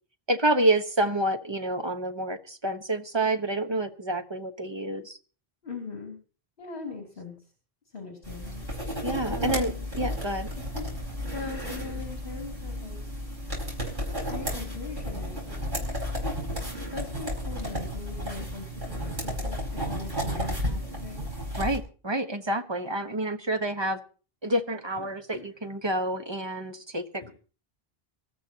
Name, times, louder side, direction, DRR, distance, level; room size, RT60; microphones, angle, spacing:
voice 1, 0.3-5.2 9.0-10.5 21.6-24.0 24.4-27.0, right 1 dB, 25° right, 6 dB, 1.2 m, -28 dB
voice 2, 5.6-6.2 6.6-7.3 7.8-9.9 10.6-10.9 11.3-13.0 14.3-19.6 19.8-21.3 24.9-25.5 27.2-27.3, left 4 dB, 60° left, 1 dB, 3.1 m, -41 dB
sound 1, 8.2-21.8, equal, 50° right, 5.1 m, -33 dB
25.5 x 13.0 x 2.9 m, 0.38 s
omnidirectional pair, 1.0 m